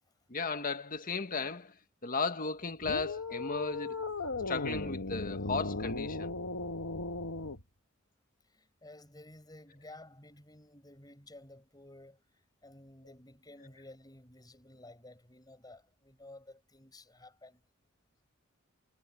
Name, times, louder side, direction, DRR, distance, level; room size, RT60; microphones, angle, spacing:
voice 1, 0.3-1.7 2.0-4.1 4.5-6.3, left 4 dB, 40° left, 1.7 m, -35 dB
sound 1, 2.8-7.6, left 3 dB, 80° left, 2.0 m, -37 dB
voice 2, 8.5-12.2 12.6-17.6, left 1 dB, 20° left, 7.6 m, -53 dB
head